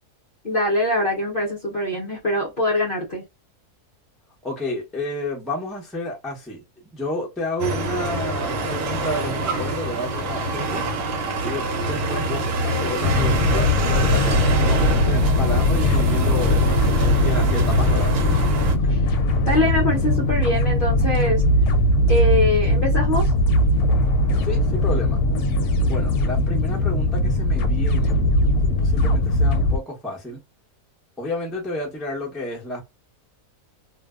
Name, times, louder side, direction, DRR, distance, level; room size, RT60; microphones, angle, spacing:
voice 1, 0.4-3.2 18.9-19.0 19.5-21.4 22.1-23.3, left 1 dB, 50° left, 0.7 m, -23 dB
voice 2, 4.4-10.9 11.4-16.7 17.2-18.1 24.4-25.2 25.9-28.2 28.7-30.4 31.2-32.8, left 1 dB, ahead, 0.4 m, -31 dB
sound 1, 7.6-18.8, right 2 dB, 70° right, 1.1 m, -25 dB
sound 2, 13.0-29.8, left 1 dB, 75° left, 1.0 m, -20 dB
2.6 x 2.2 x 2.3 m
omnidirectional pair, 1.7 m